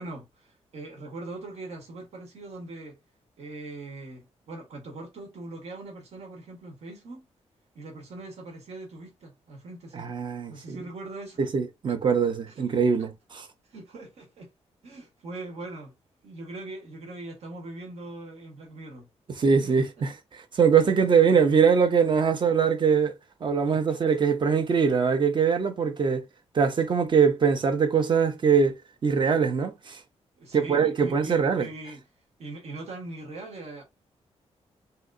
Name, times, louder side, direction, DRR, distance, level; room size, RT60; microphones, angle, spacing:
voice 1, 0.0-3.0 3.4-7.3 7.7-10.1 10.5-11.4 12.5-12.6 13.0-13.1 13.7-14.5 14.8-15.9 16.2-19.1 19.6-20.0 20.8-20.9 23.9-24.0 30.4-32.1 32.4-33.8, right 2 dB, 70° right, 1.2 m, -41 dB
voice 2, 9.9-10.8 11.4-13.1 19.4-20.1 20.5-23.1 23.4-26.2 26.5-28.7 29.0-30.0 30.5-31.7, right 6 dB, 45° right, 0.6 m, -22 dB
3.0 x 2.8 x 2.5 m
cardioid pair, 110°, 11 cm